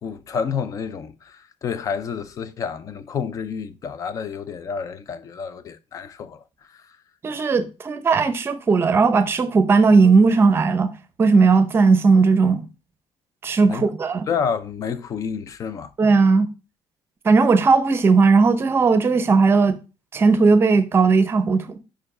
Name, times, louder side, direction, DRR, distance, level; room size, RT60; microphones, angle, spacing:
voice 1, 0.0-6.8 13.7-13.9 14.3-15.9, left 6 dB, 30° left, 0.5 m, -29 dB
voice 2, 7.2-10.9 11.2-12.6 13.4-14.3 16.0-16.5 17.2-19.7 20.1-21.8, right 4 dB, 20° right, 0.7 m, -17 dB
5.4 x 4.9 x 4.8 m
cardioid pair, 180°, 11 cm